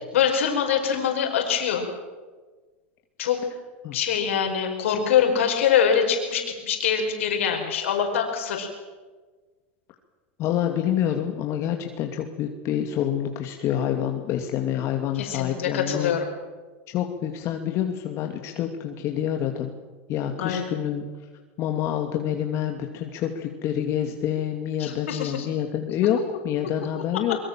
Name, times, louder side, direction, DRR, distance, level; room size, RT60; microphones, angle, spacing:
voice 1, 0.1-1.8 3.2-3.4 3.9-8.7 15.1-16.2 20.4-20.6 24.8-25.5, left 8 dB, 85° left, 3 dB, 5.1 m, -24 dB
voice 2, 10.4-16.1 16.9-19.7 20.1-21.1 21.6-27.4, left 10 dB, 45° left, 3 dB, 2.6 m, -27 dB
24.5 x 23.0 x 7.5 m, 1.3 s
supercardioid pair, 120°, 7 cm